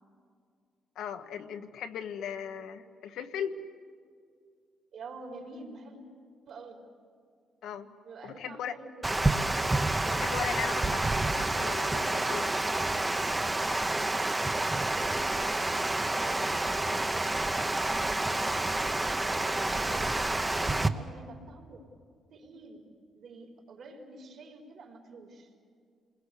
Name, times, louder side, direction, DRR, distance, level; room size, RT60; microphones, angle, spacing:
voice 1, 0.9-3.6 7.6-7.9 8.2-8.7 10.2-12.5, left 8 dB, 85° left, 7 dB, 1.2 m, -38 dB
voice 2, 4.9-6.0 6.5-6.8 8.0-8.9 14.5-15.6 18.0-18.2 19.2-20.2 20.5-21.8 22.3-22.8 23.1-25.5, right 3 dB, 60° right, 2 dB, 4.1 m, -48 dB
Water, 9.0-20.9, right 2 dB, 15° right, 0.9 m, -29 dB
27.5 x 21.0 x 8.4 m, 2.2 s
cardioid pair, 125°, 0 cm